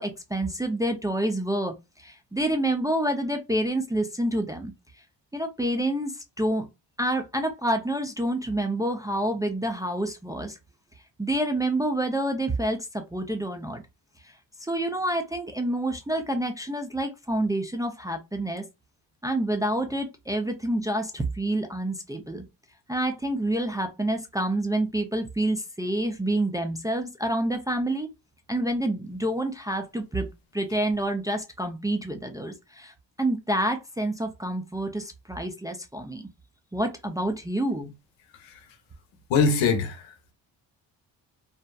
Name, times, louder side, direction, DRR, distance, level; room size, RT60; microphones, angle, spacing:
voice 1, 0.0-4.7 5.3-6.7 7.0-10.6 11.2-13.8 14.2-14.3 14.6-18.6 19.2-22.4 22.9-28.1 28.5-30.3 30.5-36.2 36.7-37.9, right 1 dB, 10° right, 0.3 m, -28 dB
voice 2, 38.3-38.6 39.3-40.3, left 5 dB, 85° left, 0.8 m, -24 dB
2.7 x 2.1 x 2.2 m
cardioid pair, 75°, 44 cm